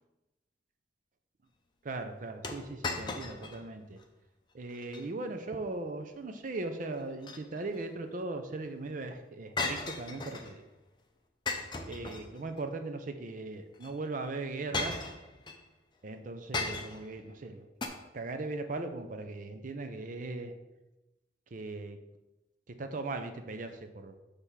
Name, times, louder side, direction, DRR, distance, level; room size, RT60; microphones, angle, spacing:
voice 1, 1.8-3.8 4.5-10.6 11.9-15.0 16.0-20.5 21.5-22.0 22.7-24.2, right 2 dB, 45° right, 7 dB, 0.5 m, -39 dB
sound 1, 2.4-3.6 4.0-4.1 4.7-5.1 7.0-7.8 9.6-10.6 11.5-12.6 13.8-13.9 14.7-15.6 16.5-17.1 17.8-17.9, left 3 dB, 25° left, 0.6 m, -36 dB
6.4 x 3.4 x 5.6 m, 1.0 s
head